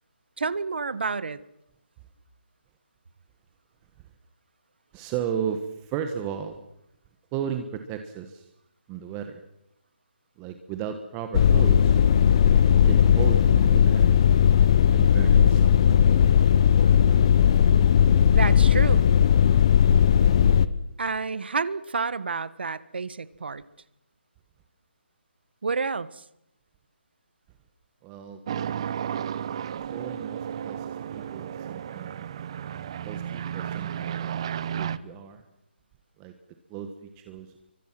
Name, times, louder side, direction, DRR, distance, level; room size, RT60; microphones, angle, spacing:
voice 1, 0.4-1.4 18.3-19.1 21.0-23.6 25.6-26.2, right 4 dB, 65° right, 16 dB, 1.6 m, -29 dB
voice 2, 4.9-6.6 7.3-8.5 8.9-9.4 10.4-12.0 12.7-14.1 14.9-15.9 28.0-28.4 29.8-32.3 33.0-34.5 34.8-35.4 36.2-36.3 36.7-36.9 37.1-37.5, right 8 dB, 15° right, 7 dB, 1.3 m, -34 dB
unknown machine, 11.3-20.7, left 8 dB, 30° left, 1.0 m, -18 dB
sound 1, 28.5-35.0, right 9 dB, 30° right, 0.9 m, -33 dB
28.0 x 24.0 x 6.1 m, 0.80 s
hypercardioid pair, 170°, 6 cm